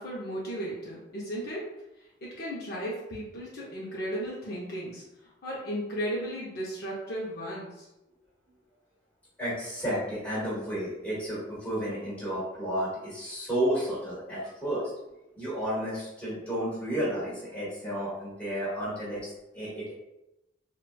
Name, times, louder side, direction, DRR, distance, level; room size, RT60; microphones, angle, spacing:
voice 1, 0.0-1.7 2.0-7.9, equal, 50° left, -5 dB, 0.5 m, -35 dB
voice 2, 9.4-14.8 15.4-19.9, equal, 5° left, -9 dB, 1.3 m, -32 dB
3.9 x 2.2 x 2.2 m, 0.92 s
head